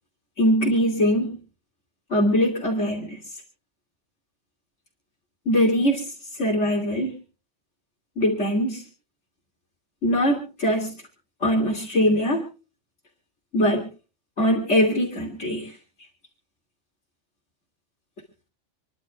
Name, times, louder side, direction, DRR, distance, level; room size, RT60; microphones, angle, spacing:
voice 1, 0.4-1.4 2.1-3.2 5.5-7.2 8.2-8.8 10.0-10.9 11.4-12.4 13.5-13.8 14.4-15.8, equal, 75° left, -2 dB, 3.2 m, -22 dB
28.5 x 11.5 x 2.5 m, 0.36 s
omnidirectional pair, 1.2 m